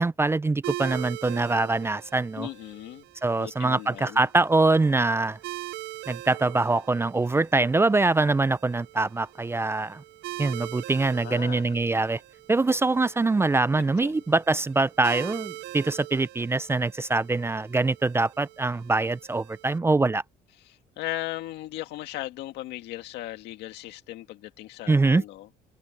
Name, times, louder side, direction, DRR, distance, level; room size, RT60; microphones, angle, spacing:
voice 1, 0.0-2.5 3.2-5.4 6.1-10.0 10.4-12.2 12.5-20.2 24.9-25.2, right 3 dB, 15° right, 0.4 m, -24 dB
sound 1, 0.6-19.8, right 17 dB, 80° right, 0.7 m, -42 dB
voice 2, 2.4-3.0 3.4-4.3 11.2-11.8 13.8-14.2 20.6-25.5, left 15 dB, 85° left, 1.9 m, -37 dB
open air
cardioid pair, 110°, 17 cm